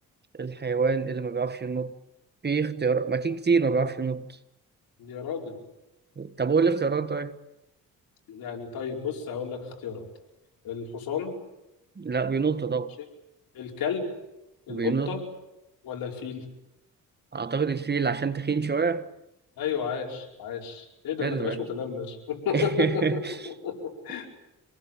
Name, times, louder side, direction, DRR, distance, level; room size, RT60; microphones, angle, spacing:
voice 1, 0.3-1.9 2.4-4.3 6.2-7.4 12.0-13.0 14.7-15.2 17.3-19.1 21.2-21.6 22.5-23.3, right 5 dB, 30° right, 1.5 m, -26 dB
voice 2, 5.0-5.6 8.3-10.1 10.6-11.4 13.5-14.1 14.7-15.2 15.8-16.4 19.6-23.2 23.4-24.3, left 7 dB, 85° left, 5.1 m, -32 dB
26.5 x 19.5 x 9.1 m
cardioid pair, 90°, 34 cm